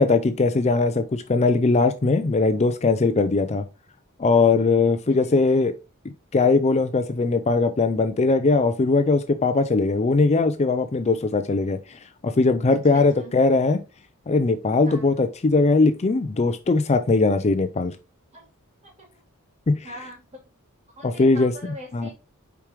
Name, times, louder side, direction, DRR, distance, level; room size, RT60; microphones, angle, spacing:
voice 1, 0.0-3.6 4.2-5.7 6.3-13.8 14.3-17.9 19.7-19.8 21.0-21.5 21.9-22.1, left 3 dB, 30° left, 0.4 m, -20 dB
voice 2, 12.7-13.3 14.8-15.1 18.3-18.5 18.8-19.1 19.8-20.5 21.0-22.1, right 1 dB, 30° right, 3.2 m, -42 dB
6.8 x 4.8 x 3.1 m
head